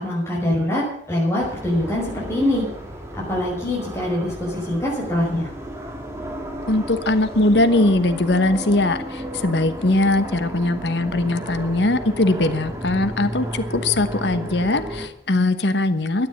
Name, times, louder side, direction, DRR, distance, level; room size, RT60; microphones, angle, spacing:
voice 1, 0.0-2.7 3.3-5.5, left 1 dB, 15° left, -5 dB, 5.7 m, -23 dB
sound 1, 1.4-15.1, right 1 dB, 15° right, 2.4 m, -33 dB
voice 2, 6.7-16.3, left 2 dB, 70° left, 11 dB, 1.1 m, -20 dB
12.5 x 9.9 x 8.7 m, 0.62 s
head